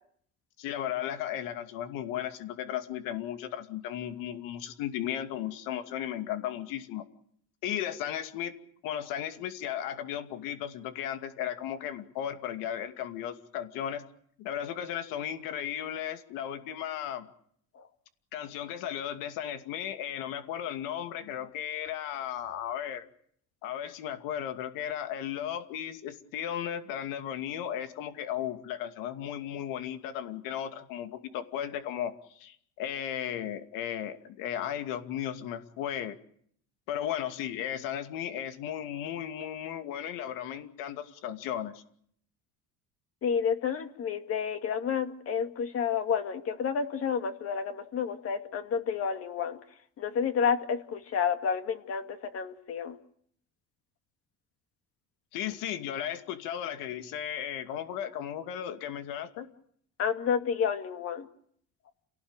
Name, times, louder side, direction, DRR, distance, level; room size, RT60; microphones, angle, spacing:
voice 1, 0.6-7.0 7.6-8.5 8.8-14.0 14.4-17.3 18.3-23.1 23.6-36.2 36.9-41.8 55.3-59.5, left 10 dB, 85° left, 8 dB, 2.5 m, -35 dB
voice 2, 43.2-49.6 50.0-53.0 60.0-61.3, left 7 dB, 45° left, 7 dB, 2.3 m, -30 dB
28.5 x 18.0 x 9.0 m, 0.65 s
cardioid pair, 145°, 33 cm